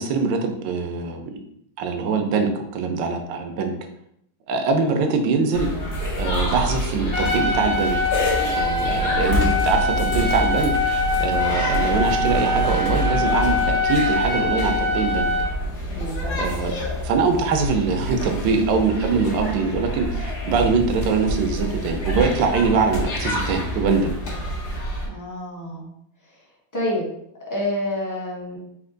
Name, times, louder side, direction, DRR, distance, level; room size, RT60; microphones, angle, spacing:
voice 1, 0.0-1.4 1.8-3.7 4.5-5.7 6.2-8.0 8.5-15.3 16.4-16.7 17.0-24.1, right 4 dB, 70° right, 4 dB, 1.3 m, -23 dB
sound 1, 5.5-25.1, equal, 55° left, 1.5 m, -27 dB
Trumpet, 7.1-15.5, left 3 dB, 35° left, 1.3 m, -24 dB
voice 2, 15.9-16.4 25.0-25.9 26.7-27.1 27.5-28.6, left 1 dB, 20° left, -4 dB, 0.5 m, -28 dB
4.4 x 2.8 x 3.8 m, 0.73 s
omnidirectional pair, 2.2 m